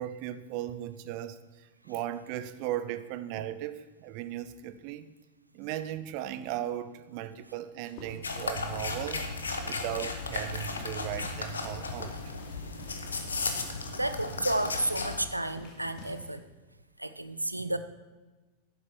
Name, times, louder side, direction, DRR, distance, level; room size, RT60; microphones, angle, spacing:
voice 1, 0.0-5.1 5.5-9.3 9.6-12.2, right 12 dB, 45° right, 13 dB, 0.6 m, -37 dB
sound 1, 7.8-16.3, left 2 dB, 40° left, 2.4 m, -50 dB
sound 2, 8.2-15.2, left 3 dB, 75° left, 1.1 m, -35 dB
voice 2, 13.9-16.4 17.0-17.8, right 1 dB, 85° right, 11 dB, 0.6 m, -31 dB
11.5 x 8.4 x 4.7 m, 1.2 s
figure-of-eight pair, 90°, 0 cm